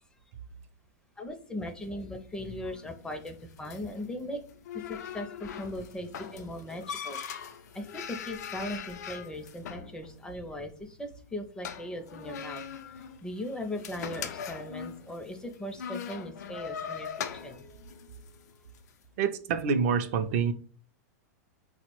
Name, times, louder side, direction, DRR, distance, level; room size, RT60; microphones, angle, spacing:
voice 1, 1.2-4.4 4.7-7.2 7.7-12.7 13.2-17.7, left 1 dB, 10° left, 0.4 m, -39 dB
sound 1, 1.7-18.9, left 7 dB, 75° left, 0.4 m, -42 dB
voice 2, 19.2-20.5, right 6 dB, 55° right, 0.4 m, -27 dB
4.1 x 2.0 x 2.9 m
hypercardioid pair, 120°, 9 cm